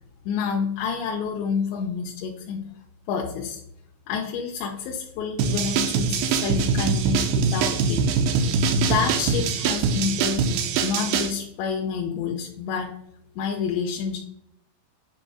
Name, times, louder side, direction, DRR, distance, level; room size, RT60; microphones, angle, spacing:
voice 1, 0.3-2.7 3.1-3.6 4.1-8.1 8.8-10.5 10.8-12.9 13.4-14.2, left 6 dB, 85° left, 1 dB, 2.9 m, -28 dB
sound 1, 5.4-11.3, right 5 dB, 85° right, 2.2 m, -23 dB
8.7 x 4.9 x 2.3 m, 0.77 s
omnidirectional pair, 5.0 m